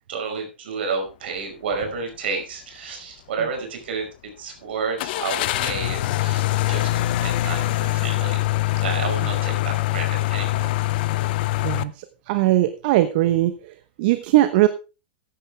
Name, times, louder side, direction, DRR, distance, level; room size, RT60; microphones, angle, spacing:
voice 1, 0.1-4.1 4.4-8.5 8.8-10.7, right 5 dB, 70° right, 4 dB, 5.3 m, -30 dB
sound 1, 1.7-1.9 2.4-2.5 5.0-11.8, left 17 dB, 60° left, 0.7 m, -23 dB
voice 2, 11.6-14.7, right 15 dB, 55° right, 11 dB, 1.0 m, -20 dB
14.5 x 10.0 x 3.5 m, 0.31 s
hypercardioid pair, 115°, 6 cm